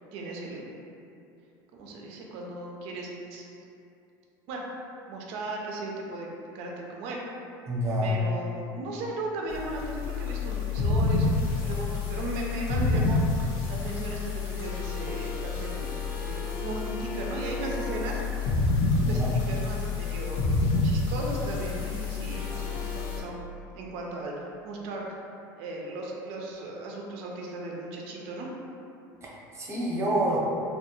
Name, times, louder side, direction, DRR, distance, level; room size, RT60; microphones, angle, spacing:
voice 1, 0.1-0.7 1.7-3.5 4.5-4.6 5.1-6.3 6.5-7.2 8.0-13.2 13.7-18.2 19.1-20.5 20.8-23.4 23.7-25.2 25.6-28.5 30.3-30.4, right 2 dB, 65° right, -1 dB, 0.4 m, -36 dB
voice 2, 7.7-8.1 19.0-19.3 29.2-30.4, right 1 dB, 25° right, -5 dB, 0.7 m, -28 dB
sound 1, 9.5-23.2, left 3 dB, 50° left, 0.5 m, -29 dB
2.2 x 2.0 x 2.9 m, 2.7 s
hypercardioid pair, 90°, 11 cm